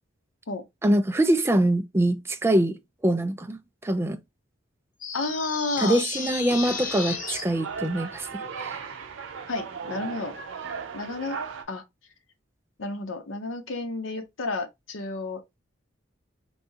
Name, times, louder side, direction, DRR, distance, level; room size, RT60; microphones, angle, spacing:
voice 1, 0.8-2.8 3.0-4.2 5.8-8.3 8.6-8.8, right 1 dB, 10° right, 0.3 m, -24 dB
sound 1, 5.0-7.4, left 6 dB, 40° left, 0.6 m, -33 dB
voice 2, 5.1-6.0 9.5-10.4 10.9-11.4 11.7-11.8 12.8-15.4, left 3 dB, 85° left, 0.8 m, -31 dB
sound 2, 6.2-11.6, right 5 dB, 75° right, 0.7 m, -37 dB
3.4 x 2.7 x 2.7 m
head